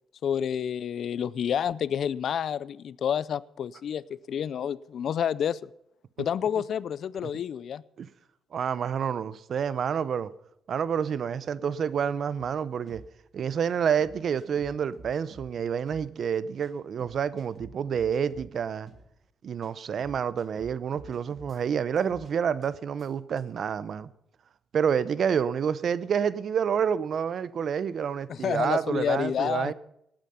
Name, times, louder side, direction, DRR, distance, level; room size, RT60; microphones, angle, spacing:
voice 1, 0.2-5.6 6.2-7.8 28.3-29.7, left 8 dB, 60° left, 0.4 m, -29 dB
voice 2, 8.5-10.3 10.7-13.0 13.3-18.9 19.4-24.1 24.7-29.7, right 7 dB, 55° right, 0.7 m, -28 dB
sound 1, 12.9-13.1 13.6-13.7 14.0-15.5 15.9-16.1 16.6-16.7 17.0-18.5 18.9-19.1 19.6-19.7 20.0-21.6 22.0-22.3 22.6-22.7 23.0-23.1 23.4-23.5, right 2 dB, 40° right, 3.3 m, -49 dB
18.0 x 9.0 x 5.6 m
cardioid pair, 90°, 0 cm